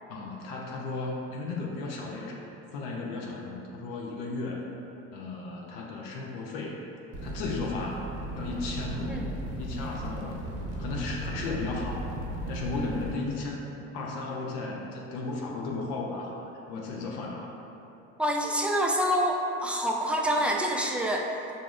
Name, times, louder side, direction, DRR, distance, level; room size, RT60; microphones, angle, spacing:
voice 1, 0.1-2.4 2.7-4.7 5.1-6.8 7.2-8.1 8.3-10.4 10.8-12.1 12.5-13.7 13.9-17.5, left 3 dB, 70° left, -2 dB, 0.7 m, -35 dB
sound 1, 7.1-13.1, right 1 dB, 45° right, 0.9 m, -36 dB
voice 2, 18.2-21.3, equal, 5° right, 0 dB, 0.3 m, -26 dB
6.6 x 2.5 x 2.4 m, 3.0 s
supercardioid pair, 85°, 34 cm